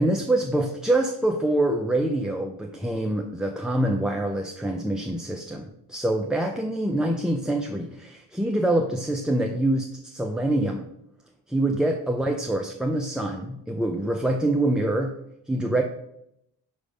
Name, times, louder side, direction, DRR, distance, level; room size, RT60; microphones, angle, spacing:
voice 1, 0.0-10.9 11.5-15.2 15.5-15.8, right 1 dB, ahead, 2 dB, 0.5 m, -25 dB
5.3 x 5.0 x 5.0 m, 0.79 s
cardioid pair, 80°, 41 cm